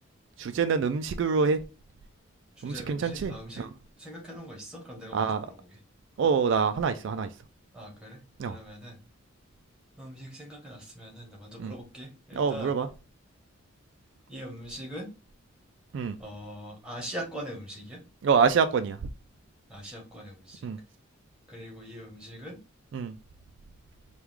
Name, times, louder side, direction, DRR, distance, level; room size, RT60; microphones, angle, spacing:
voice 1, 0.4-1.6 2.6-3.7 5.1-5.5 6.2-7.3 8.4-8.6 11.6-11.7 12.4-12.9 15.9-16.2 18.2-19.0 20.6-20.8 22.9-23.1, right 5 dB, 60° right, 9 dB, 0.3 m, -26 dB
voice 2, 2.6-3.7 4.0-5.8 7.7-9.0 10.0-12.7 14.3-15.1 16.2-18.0 19.7-20.7 21.5-22.6, equal, 5° right, -1 dB, 1.1 m, -42 dB
4.6 x 2.3 x 3.5 m, 0.32 s
head